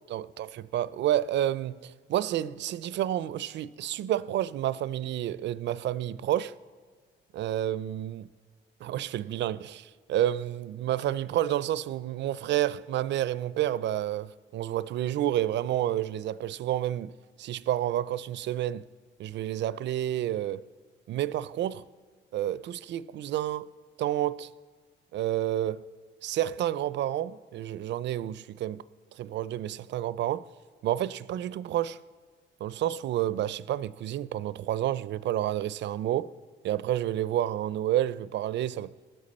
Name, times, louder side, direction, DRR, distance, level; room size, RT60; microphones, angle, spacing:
voice 1, 0.1-6.5 7.3-8.3 8.8-17.1 17.4-18.9 19.2-20.6 21.1-21.8 22.3-23.7 24.0-24.5 25.1-25.8 26.2-28.8 29.2-30.5 30.8-32.0 32.6-36.3 36.6-38.9, right 12 dB, 65° right, 0.4 m, -30 dB
18.5 x 7.7 x 4.2 m
cardioid pair, 90°, 20 cm